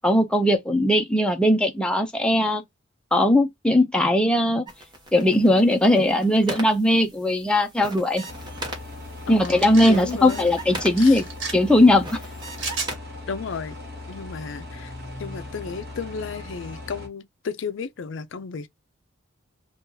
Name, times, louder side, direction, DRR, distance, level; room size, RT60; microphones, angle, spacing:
voice 1, 0.0-2.6 3.1-4.7 5.1-8.2 9.3-11.2 11.5-12.2, left 1 dB, 5° left, 0.4 m, -19 dB
sound 1, 4.7-13.0, right 1 dB, 20° right, 0.9 m, -40 dB
sound 2, 8.3-17.1, left 2 dB, 50° right, 1.2 m, -39 dB
voice 2, 9.3-10.5 11.0-11.2 13.3-13.8 14.1-14.9 15.2-18.7, left 5 dB, 65° left, 0.4 m, -33 dB
sound 3, 9.4-10.0 11.0-11.5 12.6-12.9, right 4 dB, 70° right, 1.3 m, -31 dB
2.8 x 2.4 x 3.7 m
head